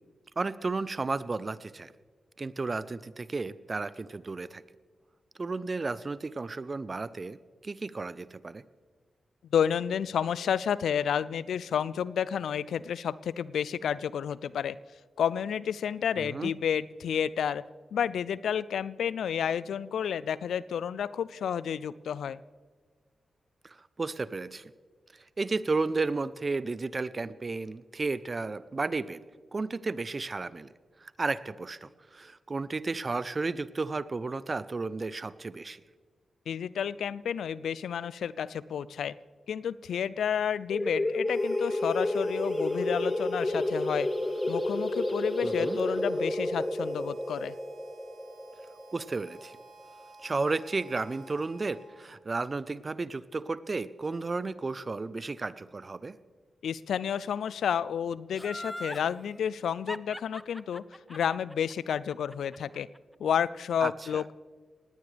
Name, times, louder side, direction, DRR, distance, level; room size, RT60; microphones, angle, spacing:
voice 1, 0.4-1.9 2.4-4.6 5.4-7.4 7.6-8.6 16.2-16.5 23.6-24.7 25.1-29.2 29.5-30.7 31.0-35.8 45.4-45.8 48.9-49.6 50.2-56.2 63.8-64.2, right 3 dB, 45° right, 17 dB, 0.6 m, -33 dB
voice 2, 9.5-14.8 15.2-17.6 17.9-22.4 36.5-39.1 39.5-44.1 44.5-47.5 56.6-60.8 61.1-62.9 63.2-64.3, left 8 dB, 80° left, 19 dB, 0.4 m, -30 dB
sound 1, 40.7-50.0, left 1 dB, 30° left, 1.7 m, -30 dB
Harmonica, 41.2-52.2, right 3 dB, 70° right, 4.4 m, -53 dB
Laughter, 58.4-59.1 59.9-63.0 63.3-63.4, left 1 dB, 10° left, 0.6 m, -40 dB
19.0 x 17.0 x 3.4 m, 1.5 s
supercardioid pair, 40°, 0 cm